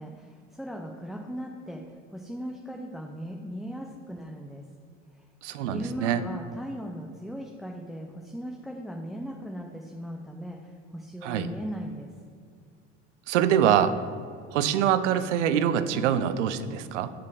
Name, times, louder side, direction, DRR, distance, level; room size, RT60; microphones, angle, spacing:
voice 1, 0.0-1.8 2.1-4.6 5.7-10.6 10.9-12.1, equal, ahead, 1 dB, 0.5 m, -38 dB
voice 2, 5.4-6.2 11.2-11.6 13.3-14.0 14.5-17.1, right 9 dB, 75° right, 12 dB, 0.5 m, -24 dB
7.1 x 4.3 x 4.8 m, 2.2 s
hypercardioid pair, 70°, 36 cm